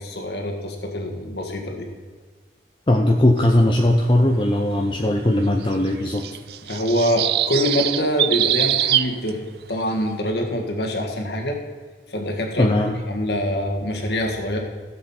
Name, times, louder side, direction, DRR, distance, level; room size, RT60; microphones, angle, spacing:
voice 1, 0.0-1.9 6.7-9.4 9.7-11.6 12.1-12.7 13.1-14.6, left 1 dB, 65° left, 2 dB, 1.7 m, -24 dB
voice 2, 2.9-6.2 12.6-13.0, left 1 dB, 25° left, 2 dB, 0.6 m, -19 dB
sound 1, 5.6-9.3, right 12 dB, 60° right, 0.4 m, -22 dB
15.5 x 7.5 x 4.4 m, 1.5 s
head